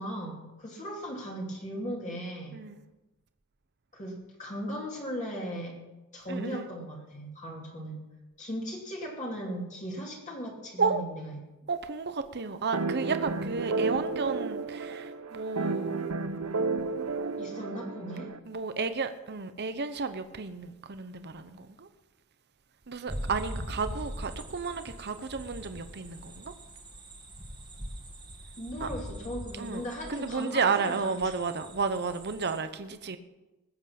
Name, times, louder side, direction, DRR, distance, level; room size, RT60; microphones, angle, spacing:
voice 1, 0.0-2.6 3.9-5.8 6.1-8.0 8.4-11.4 17.4-18.3 28.6-31.1, equal, 35° left, 2.8 m, -37 dB
voice 2, 2.5-2.8 6.3-6.7 10.8-11.0 11.7-16.0 18.5-21.9 22.9-26.5 28.8-28.9 29.6-29.8 30.1-33.2, right 4 dB, 50° right, 0.9 m, -32 dB
sound 1, 12.7-18.4, right 4 dB, 70° right, 0.8 m, -32 dB
sound 2, 23.1-32.6, equal, 20° right, 1.8 m, -42 dB
20.0 x 8.0 x 5.9 m
head